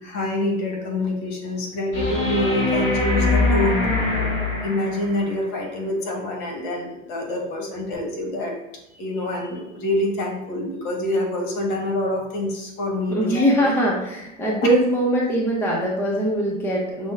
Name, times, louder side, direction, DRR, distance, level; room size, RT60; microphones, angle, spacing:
voice 1, 0.0-3.9 4.6-8.6 8.9-13.5, left 1 dB, 55° left, 1 dB, 1.4 m, -26 dB
sound 1, 1.9-5.3 7.9-8.0, left 2 dB, 30° left, 1.5 m, -23 dB
voice 2, 13.1-17.1, right 1 dB, 5° left, -3 dB, 0.6 m, -22 dB
6.0 x 2.2 x 3.3 m, 0.87 s
hypercardioid pair, 115°, 39 cm